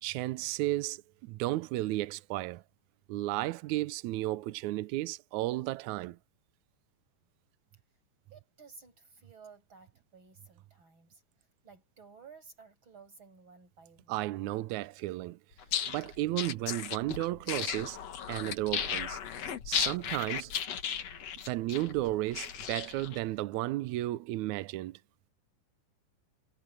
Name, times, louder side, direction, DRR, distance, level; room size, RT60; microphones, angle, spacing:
voice 1, 0.0-2.6 3.1-6.2 14.1-15.4 15.9-18.0 18.3-19.2 19.6-20.5 21.5-25.0, right 16 dB, 85° right, 1.6 m, -33 dB
voice 2, 8.3-11.2 11.6-14.3, right 5 dB, 30° right, 7.6 m, -55 dB
sound 1, 15.6-23.2, left 8 dB, 55° left, 2.4 m, -35 dB
omnidirectional pair, 4.2 m